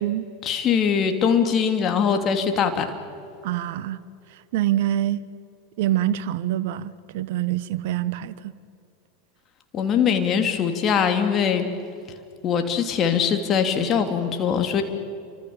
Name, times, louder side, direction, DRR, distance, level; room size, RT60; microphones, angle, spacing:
voice 1, 0.4-2.9 9.7-11.7 12.4-14.8, left 7 dB, 35° left, 6 dB, 2.9 m, -22 dB
voice 2, 3.4-4.0 4.3-5.2 5.8-8.5, right 13 dB, 55° right, 16 dB, 1.0 m, -25 dB
29.5 x 25.0 x 7.2 m, 2.5 s
figure-of-eight pair, 85°, 0 cm